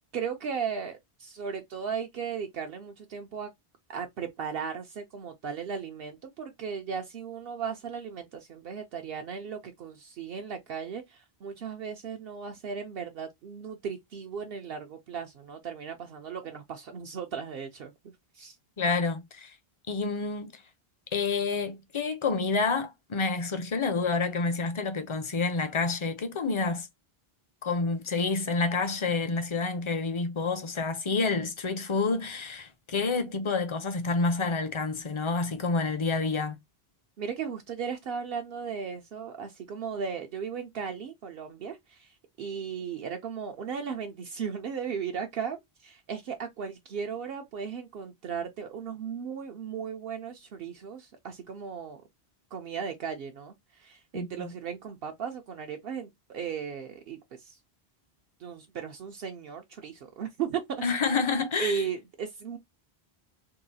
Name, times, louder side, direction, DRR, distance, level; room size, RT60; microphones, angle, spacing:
voice 1, 0.1-3.5 3.9-17.9 18.3-18.6 37.2-52.0 52.5-57.6 58.4-60.6 61.6-62.6, right 7 dB, 70° right, 0.8 m, -36 dB
voice 2, 18.8-19.5 19.9-20.6 21.1-26.9 27.6-36.6 54.1-54.5 60.8-61.9, left 4 dB, 40° left, 0.5 m, -28 dB
3.8 x 2.3 x 2.6 m
omnidirectional pair, 1.0 m